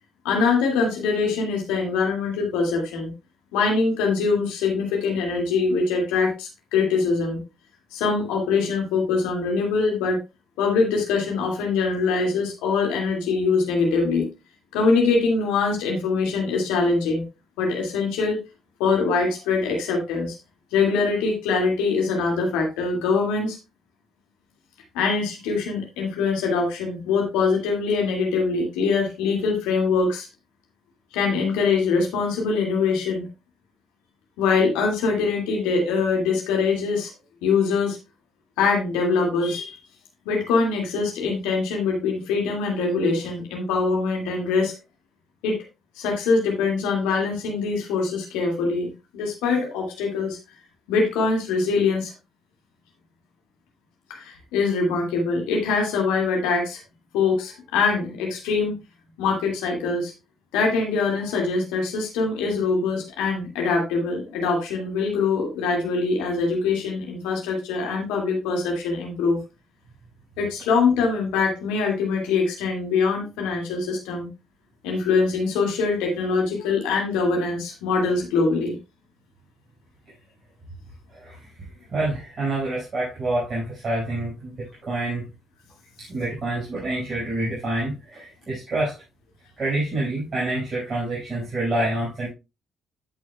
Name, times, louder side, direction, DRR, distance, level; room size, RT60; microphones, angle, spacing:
voice 1, 0.2-3.1 3.5-7.4 7.9-10.2 10.6-14.3 14.7-17.2 17.6-18.4 18.8-20.3 20.7-23.6 24.9-30.3 31.1-33.3 34.4-37.1 37.4-38.0 38.6-39.7 40.3-44.7 45.4-45.6 46.0-50.4 50.9-52.1 54.1-56.8 57.1-58.7 59.2-60.1 60.5-69.4 70.4-74.3 74.8-78.8, left 4 dB, 70° left, 0 dB, 2.2 m, -23 dB
voice 2, 81.9-85.2 86.1-88.9 89.6-92.3, right 2 dB, 40° right, -6 dB, 5.2 m, -27 dB
14.0 x 6.2 x 2.3 m, 0.27 s
figure-of-eight pair, 45°, 0 cm